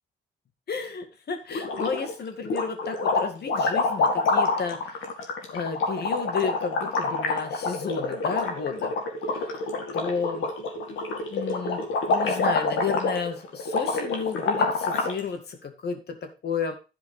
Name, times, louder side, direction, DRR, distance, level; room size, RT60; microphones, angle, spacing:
voice 1, 0.7-5.0 5.5-8.9 9.3-9.7 9.9-10.5 11.3-11.8 12.1-16.8, left 5 dB, 55° left, 7 dB, 2.1 m, -32 dB
sound 1, 1.5-2.1 2.5-15.2, left 3 dB, 80° left, 2.3 m, -27 dB
12.0 x 5.1 x 4.9 m, 0.31 s
cardioid pair, 90°, 20 cm